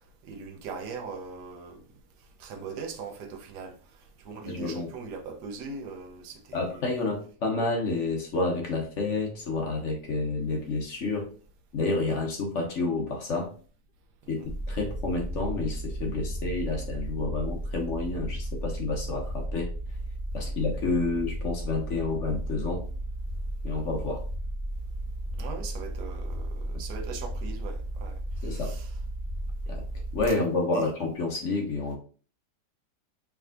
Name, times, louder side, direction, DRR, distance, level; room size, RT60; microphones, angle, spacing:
voice 1, 0.3-1.8 2.4-3.7 4.2-6.8 14.4-14.5 20.4-20.5 25.4-28.9 30.7-30.9, right 5 dB, 80° right, 1.4 m, -40 dB
voice 2, 4.5-4.9 6.5-11.3 11.7-13.5 14.3-19.7 20.3-22.8 23.6-24.2 28.4-28.7 29.7-29.8 30.1-32.0, left 3 dB, 55° left, 1.0 m, -29 dB
sound 1, 14.4-30.3, right 1 dB, ahead, 0.7 m, -34 dB
4.7 x 3.4 x 2.4 m
omnidirectional pair, 1.8 m